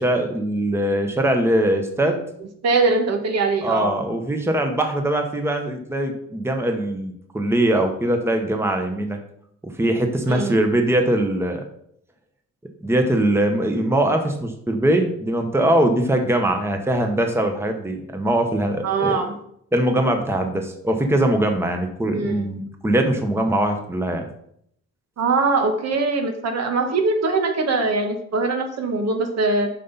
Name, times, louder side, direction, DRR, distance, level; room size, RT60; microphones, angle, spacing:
voice 1, 0.0-2.2 3.6-9.2 9.6-11.6 12.8-19.2 19.7-24.3, right 1 dB, 10° right, 4 dB, 1.0 m, -21 dB
voice 2, 2.6-3.9 10.3-10.5 18.8-19.3 22.1-22.5 25.2-29.7, right 3 dB, 60° right, 5 dB, 1.2 m, -22 dB
7.5 x 5.5 x 4.0 m, 0.70 s
cardioid pair, 90°, 30 cm